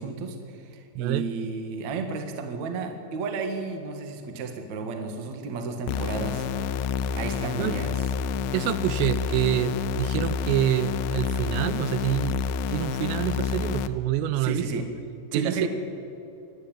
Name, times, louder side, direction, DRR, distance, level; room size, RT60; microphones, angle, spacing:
voice 1, 0.0-6.5 7.1-8.0 14.4-14.9 15.3-15.7, right 4 dB, 60° right, 5 dB, 1.9 m, -32 dB
voice 2, 1.0-1.3 7.6-7.7 8.5-14.7 15.3-15.7, right 12 dB, 85° right, 13 dB, 3.2 m, -27 dB
sound 1, 5.9-13.9, left 7 dB, 85° left, 2.7 m, -28 dB
27.0 x 11.0 x 8.8 m, 2.8 s
omnidirectional pair, 6.0 m